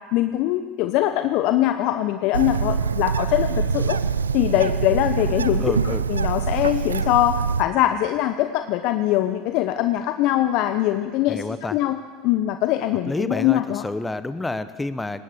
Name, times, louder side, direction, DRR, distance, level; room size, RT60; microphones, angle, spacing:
voice 1, 0.1-4.0 4.3-13.8, left 13 dB, 60° left, 9 dB, 0.9 m, -22 dB
Bird, 2.3-7.6, right 5 dB, 90° right, 0.5 m, -24 dB
voice 2, 5.6-6.0 11.3-11.8 13.1-15.2, left 2 dB, 10° left, 13 dB, 1.0 m, -29 dB
19.0 x 18.5 x 7.8 m, 1.5 s
hypercardioid pair, 75°, 0 cm